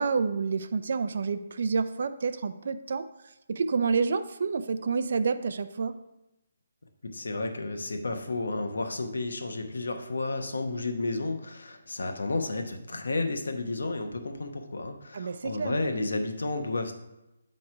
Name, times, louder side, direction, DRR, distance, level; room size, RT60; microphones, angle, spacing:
voice 1, 0.0-3.0 3.5-5.9 15.1-15.8, right 5 dB, 60° right, 11 dB, 0.4 m, -28 dB
voice 2, 7.1-16.9, left 2 dB, 85° left, 5 dB, 0.9 m, -32 dB
8.7 x 3.2 x 4.7 m, 0.95 s
hypercardioid pair, 165°, 0 cm